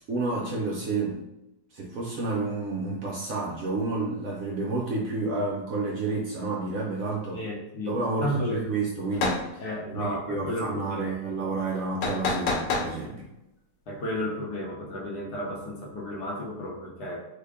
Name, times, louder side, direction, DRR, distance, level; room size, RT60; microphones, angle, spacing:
voice 1, 0.1-1.2 1.7-7.4 7.8-9.6 9.9-13.2, right 3 dB, 65° right, -3 dB, 0.9 m, -30 dB
voice 2, 7.3-8.6 9.6-11.2 13.1-13.3 13.9-17.3, left 1 dB, 70° left, -2 dB, 1.4 m, -33 dB
sound 1, 9.1-9.4 12.0-12.9, left 3 dB, 90° left, 1.4 m, -27 dB
3.5 x 2.2 x 3.4 m, 0.89 s
omnidirectional pair, 1.9 m